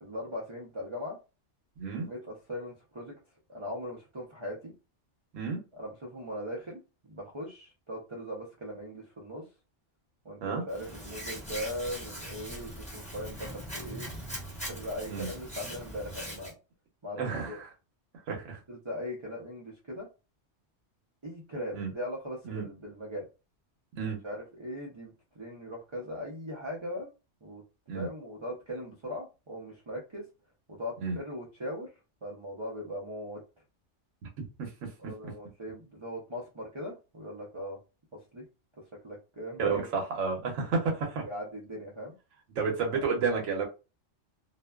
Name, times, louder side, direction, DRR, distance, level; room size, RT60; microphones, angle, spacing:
voice 1, 0.0-1.2 1.9-3.1 3.5-4.7 5.7-6.8 7.1-9.4 10.2-14.1 14.7-16.6 17.0-17.5 18.7-20.1 21.2-23.3 24.0-27.1 27.4-27.6 27.9-30.2 30.7-31.9 32.2-33.4 35.0-37.8 38.3-38.4 39.0-39.9 41.2-42.1 42.9-43.0, equal, 35° right, 0.4 m, -39 dB
voice 2, 1.8-2.1 5.3-5.6 10.4-10.6 15.1-15.3 17.2-17.7 18.3-18.6 21.7-21.9 22.5-22.7 24.0-24.2 27.9-28.1 31.0-31.2 34.4-35.3 39.6-41.2 42.6-43.6, right 5 dB, 85° right, 1.0 m, -31 dB
Hands, 10.7-16.5, equal, 5° left, 0.7 m, -41 dB
2.5 x 2.2 x 2.2 m
omnidirectional pair, 1.3 m